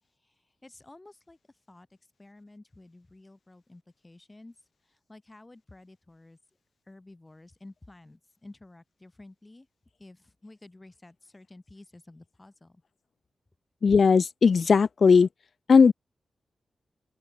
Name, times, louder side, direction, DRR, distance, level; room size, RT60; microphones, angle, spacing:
voice 1, 0.0-6.4 6.8-9.7 10.0-12.8, left 2 dB, 20° left, 4.8 m, -52 dB
voice 2, 13.8-15.3 15.7-15.9, left 5 dB, 60° left, 0.3 m, -18 dB
open air
cardioid pair, 80°, 0 cm